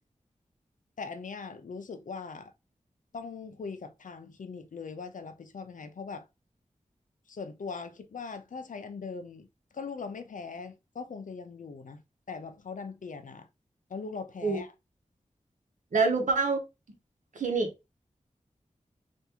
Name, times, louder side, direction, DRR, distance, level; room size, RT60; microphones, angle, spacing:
voice 1, 1.0-2.5 3.1-6.3 7.3-9.5 9.7-12.0 12.3-13.5 13.9-14.7, left 5 dB, 75° left, 0.5 m, -40 dB
voice 2, 15.9-16.6 17.3-17.7, right 4 dB, 75° right, 0.9 m, -26 dB
3.4 x 2.5 x 2.8 m
wide cardioid pair, 65°, 13 cm